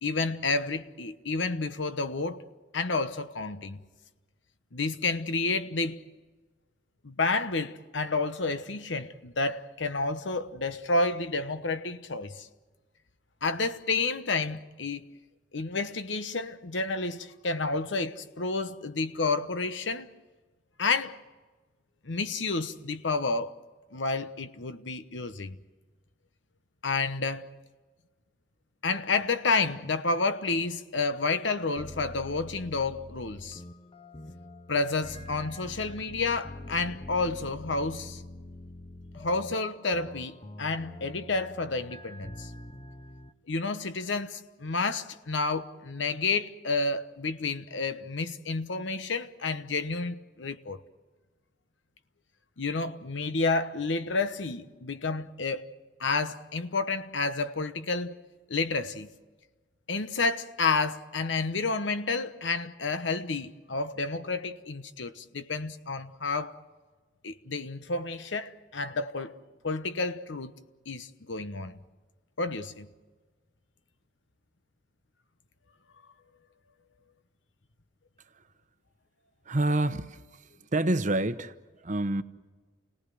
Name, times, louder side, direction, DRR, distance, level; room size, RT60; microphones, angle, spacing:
voice 1, 0.0-2.4 2.7-3.8 4.7-6.0 7.0-12.5 13.4-15.2 15.5-20.1 20.8-21.2 22.0-23.5 23.9-25.6 26.8-27.5 28.8-33.6 34.7-38.2 39.2-42.5 43.5-50.8 52.6-55.7 56.0-58.2 58.5-59.1 59.9-66.6 67.2-69.3 69.6-70.5 70.9-71.8 72.4-72.9, left 3 dB, 75° left, 1.1 m, -30 dB
sound 1, 31.8-43.3, left 2 dB, 25° left, 0.8 m, -45 dB
voice 2, 79.5-80.2 80.7-81.5 81.8-82.2, right 1 dB, 40° right, 0.9 m, -27 dB
29.5 x 18.5 x 7.8 m
head